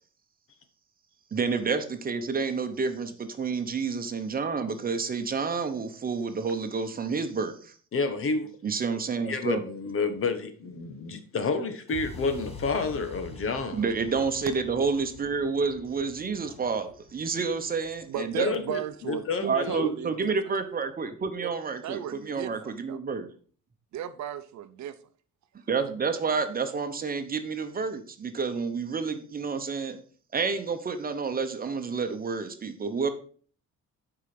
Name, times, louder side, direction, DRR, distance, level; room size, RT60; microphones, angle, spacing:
voice 1, 1.3-7.7 8.6-9.6 13.7-18.5 19.4-23.3 25.7-30.0 30.3-33.1, right 5 dB, 30° right, 1.0 m, -29 dB
voice 2, 7.9-8.5 9.3-13.8 18.4-19.9, left 4 dB, 45° left, 1.3 m, -29 dB
sound 1, 11.9-19.8, left 2 dB, 20° left, 1.6 m, -46 dB
voice 3, 18.1-20.3 21.4-21.5 21.8-23.0 23.9-25.0, right 10 dB, 65° right, 0.8 m, -35 dB
8.2 x 4.9 x 6.0 m
cardioid pair, 140°, 30 cm